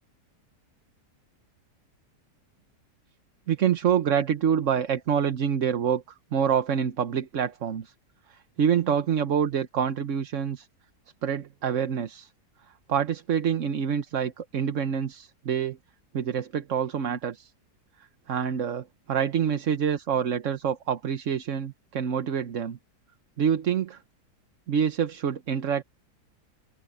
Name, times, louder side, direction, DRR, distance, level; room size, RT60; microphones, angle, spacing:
voice 1, 3.5-6.0 6.3-7.9 8.3-10.7 11.2-12.3 12.9-15.8 16.1-17.5 18.3-22.8 23.4-24.0 24.7-25.8, right 8 dB, 55° right, 1.2 m, -26 dB
open air
omnidirectional pair, 1.7 m